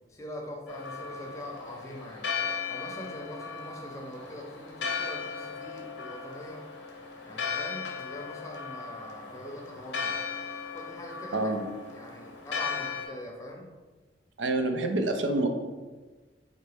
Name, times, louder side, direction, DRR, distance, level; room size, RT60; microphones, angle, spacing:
voice 1, 0.1-2.3 2.7-6.6 7.2-10.2 10.7-11.5 11.9-13.7, left 1 dB, 20° left, 0 dB, 0.6 m, -43 dB
Church bell, 0.7-13.1, left 5 dB, 90° left, 0.6 m, -37 dB
voice 2, 11.3-11.6 14.4-15.5, right 2 dB, 90° right, 5 dB, 0.5 m, -27 dB
3.9 x 3.1 x 3.3 m, 1.3 s
head